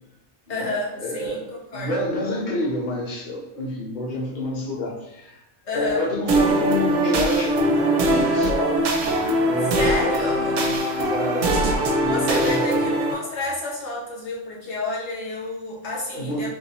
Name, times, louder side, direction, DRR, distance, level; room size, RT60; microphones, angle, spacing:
voice 1, 0.5-2.0 5.6-6.1 9.7-10.7 12.0-16.5, left 2 dB, 65° left, -4 dB, 1.2 m, -30 dB
voice 2, 1.0-1.4 1.7-5.4 5.7-8.9 9.5-10.1 11.0-13.0 16.1-16.5, equal, 40° left, -3 dB, 1.0 m, -28 dB
sound 1, 6.3-13.1, right 1 dB, 80° right, 1.0 m, -21 dB
3.9 x 3.2 x 3.0 m, 0.89 s
omnidirectional pair, 1.3 m